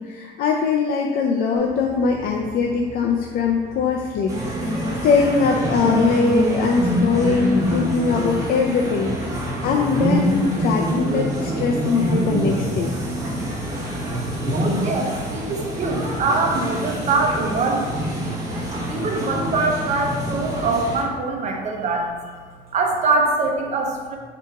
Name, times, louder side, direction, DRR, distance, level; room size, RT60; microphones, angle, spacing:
voice 1, 0.0-12.9, left 5 dB, 60° left, 0 dB, 0.4 m, -22 dB
sound 1, 1.6-14.8, right 3 dB, 15° left, 1.1 m, -42 dB
sound 2, 4.3-21.0, equal, 20° right, 1.0 m, -25 dB
voice 2, 14.5-17.9 18.1-18.4 18.9-22.5 22.7-24.2, right 3 dB, 45° right, 2 dB, 0.7 m, -23 dB
3.5 x 2.9 x 4.5 m, 1.5 s
cardioid pair, 110°, 17 cm